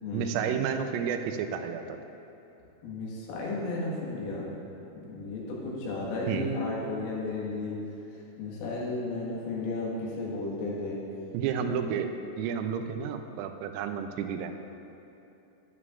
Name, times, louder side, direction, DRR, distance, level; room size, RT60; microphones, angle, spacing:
voice 1, 0.1-2.0 6.3-6.5 11.3-12.1 12.4-14.6, right 7 dB, 85° right, 6 dB, 3.1 m, -31 dB
voice 2, 2.8-4.5 5.0-7.8 8.4-11.0 11.6-12.0, left 2 dB, 85° left, -5 dB, 4.2 m, -34 dB
11.0 x 11.0 x 2.5 m, 2.9 s
omnidirectional pair, 5.8 m